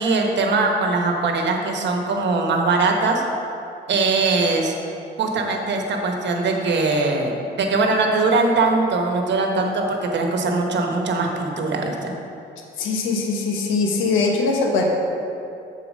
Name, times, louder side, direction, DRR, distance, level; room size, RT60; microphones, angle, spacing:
voice 1, 0.0-3.2 3.9-4.7 5.2-12.1, right 3 dB, 65° right, 2 dB, 1.1 m, -21 dB
voice 2, 12.8-14.8, left 4 dB, 85° left, 1 dB, 0.9 m, -21 dB
7.0 x 4.4 x 6.4 m, 2.7 s
cardioid pair, 90°, 20 cm